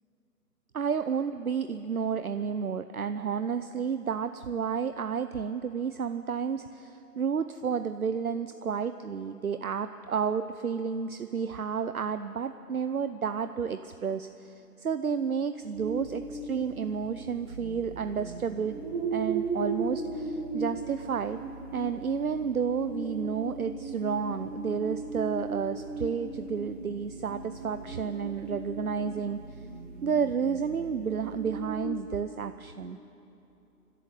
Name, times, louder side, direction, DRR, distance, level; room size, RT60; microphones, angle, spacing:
voice 1, 0.7-18.8 19.1-21.4 21.7-29.4 30.0-33.0, right 6 dB, 65° right, 10 dB, 0.8 m, -31 dB
sound 1, 15.7-31.8, right 3 dB, 30° right, 2.4 m, -37 dB
26.0 x 12.5 x 9.3 m, 2.9 s
figure-of-eight pair, 150°, 47 cm